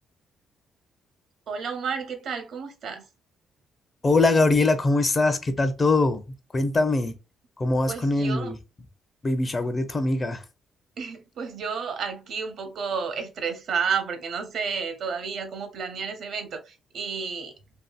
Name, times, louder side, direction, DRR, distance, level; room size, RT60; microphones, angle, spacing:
voice 1, 1.5-3.1 7.9-8.5 11.0-17.5, right 6 dB, 65° right, 0.7 m, -31 dB
voice 2, 4.0-6.2 6.5-7.1 7.6-8.5 9.2-10.4, left 2 dB, 30° left, 0.5 m, -22 dB
2.7 x 2.7 x 2.3 m
cardioid pair, 90°, 0 cm